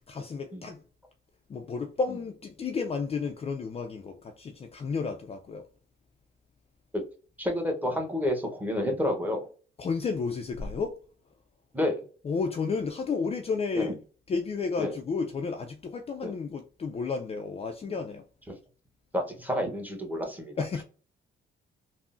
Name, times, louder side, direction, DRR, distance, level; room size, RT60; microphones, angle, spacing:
voice 1, 0.1-0.8 1.5-5.6 9.8-11.0 12.2-13.9 14.3-18.2 20.6-20.8, left 4 dB, 30° left, 0.4 m, -32 dB
voice 2, 7.4-9.5 11.7-12.0 13.8-13.9 14.8-15.0 16.2-16.3 19.1-20.5, left 1 dB, 10° right, 0.9 m, -29 dB
3.5 x 2.0 x 2.5 m
cardioid pair, 90°, 20 cm